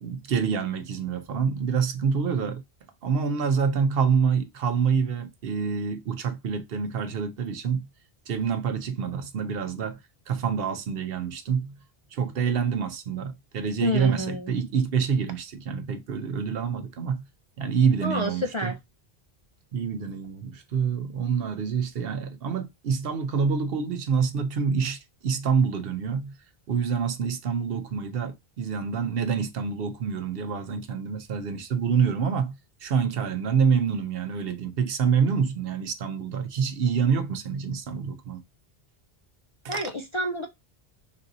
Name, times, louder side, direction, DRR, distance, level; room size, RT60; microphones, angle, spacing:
voice 1, 0.0-2.6 3.0-7.9 8.3-10.0 10.3-11.7 12.1-17.2 17.6-18.7 19.7-26.3 26.7-32.5 32.8-38.4 39.6-39.8, right 6 dB, 70° right, 0.8 m, -27 dB
voice 2, 13.8-14.5 18.0-18.7 39.7-40.5, left 1 dB, 45° left, 0.4 m, -29 dB
3.9 x 2.7 x 3.8 m
omnidirectional pair, 1.1 m